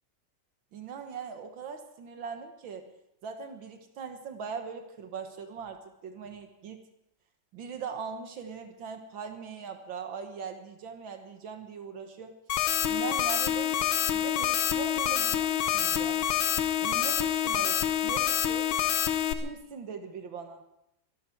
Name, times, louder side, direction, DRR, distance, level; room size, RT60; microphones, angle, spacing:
voice 1, 0.7-2.9 3.2-6.8 7.5-12.3 12.9-13.8 14.1-16.2 16.8-18.7 19.3-20.6, right 6 dB, 80° right, 6 dB, 2.0 m, -40 dB
sound 1, 12.5-19.3, left 10 dB, 85° left, 1.7 m, -27 dB
25.0 x 11.5 x 4.5 m, 0.83 s
omnidirectional pair, 2.1 m